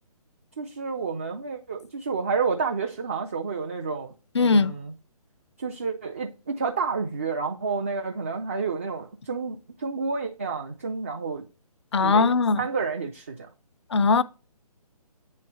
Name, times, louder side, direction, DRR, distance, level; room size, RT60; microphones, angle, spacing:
voice 1, 0.6-4.1 4.4-4.9 5.6-11.4 12.0-12.3 12.6-13.5, right 5 dB, 20° right, 0.4 m, -30 dB
voice 2, 4.3-4.7 11.9-12.6 13.9-14.2, left 4 dB, 45° left, 0.4 m, -20 dB
8.5 x 3.2 x 5.5 m
figure-of-eight pair, 145°, 20 cm